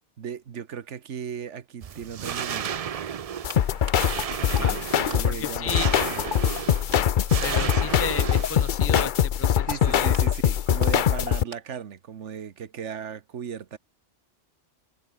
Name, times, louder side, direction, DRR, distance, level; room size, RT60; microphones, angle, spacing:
voice 1, 0.2-2.8 4.4-5.8 6.1-6.4 9.7-13.8, right 8 dB, 75° right, 1.5 m, -37 dB
sound 1, 1.8-9.0, right 8 dB, 55° right, 0.4 m, -33 dB
sound 2, 3.4-11.4, left 9 dB, 50° left, 0.6 m, -23 dB
voice 2, 4.4-4.8 5.2-5.9 7.4-10.2, left 5 dB, 15° left, 0.7 m, -33 dB
sound 3, 5.1-5.3 5.7-6.6 6.9-7.1 7.7-11.9 12.2-12.4, right 2 dB, 90° right, 6.9 m, -47 dB
omnidirectional pair, 1.2 m